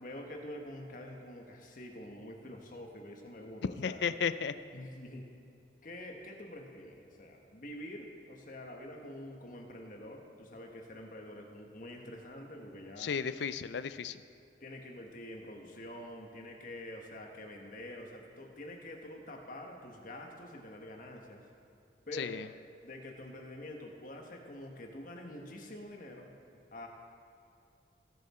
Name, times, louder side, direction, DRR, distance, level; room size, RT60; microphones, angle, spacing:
voice 1, 0.0-4.0 4.7-5.3 5.8-13.1 14.6-21.4 22.1-22.4 22.8-26.3 26.7-26.9, left 1 dB, 50° left, 2 dB, 1.4 m, -46 dB
voice 2, 3.8-4.5 13.0-14.2 22.2-22.4, left 6 dB, 70° left, 14 dB, 0.4 m, -34 dB
20.0 x 7.3 x 4.3 m, 2.4 s
head